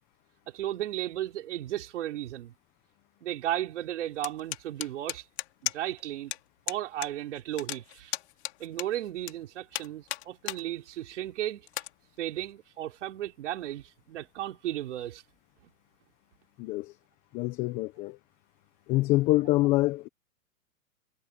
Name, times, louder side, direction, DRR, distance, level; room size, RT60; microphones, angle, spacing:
voice 1, 0.5-2.5 3.2-5.3 5.6-6.3 6.7-8.2 8.6-11.7 12.2-15.2 15.6-15.7, right 13 dB, 50° right, 4.1 m, -35 dB
sound 1, 4.2-6.0 6.3-6.4 6.7-7.1 7.4-9.3 9.7-10.6 11.0-11.1 11.7-11.9, left 15 dB, 45° left, 3.3 m, -35 dB
voice 2, 16.6-16.9 17.3-18.2 18.9-20.1, left 18 dB, 20° left, 1.0 m, -25 dB
hypercardioid pair, 155°, 43 cm